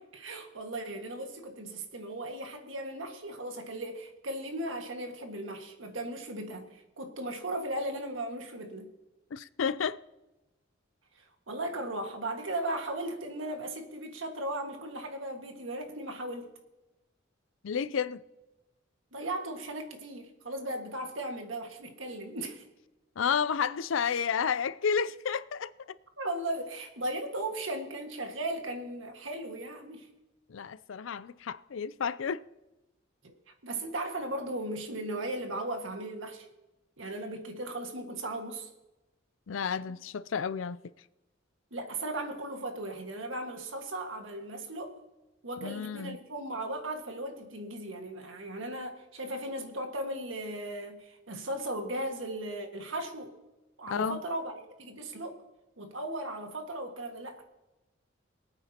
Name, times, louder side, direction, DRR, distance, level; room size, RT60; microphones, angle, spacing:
voice 1, 0.0-8.9 11.2-16.5 19.1-22.6 26.2-30.1 33.2-33.3 33.6-36.5 37.0-38.7 41.7-45.0 45.4-53.3 53.8-55.4 55.8-57.4, right 1 dB, 90° right, 1.8 m, -37 dB
voice 2, 9.3-10.0 17.6-18.2 23.2-25.7 30.5-32.4 39.5-40.8 45.6-46.2 53.9-54.2, left 6 dB, 85° left, 0.5 m, -31 dB
24.0 x 8.9 x 2.9 m
head